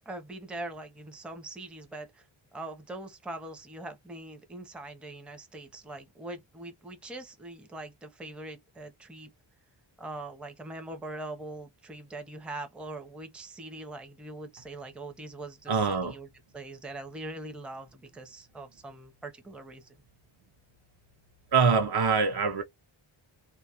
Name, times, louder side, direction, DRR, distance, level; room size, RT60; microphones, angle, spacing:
voice 1, 0.1-2.3 2.5-9.3 10.0-16.3 16.5-20.0, right 2 dB, ahead, 0.5 m, -42 dB
voice 2, 15.7-16.2 21.5-22.6, right 5 dB, 50° right, 0.6 m, -24 dB
2.2 x 2.0 x 2.7 m
wide cardioid pair, 85°, 49 cm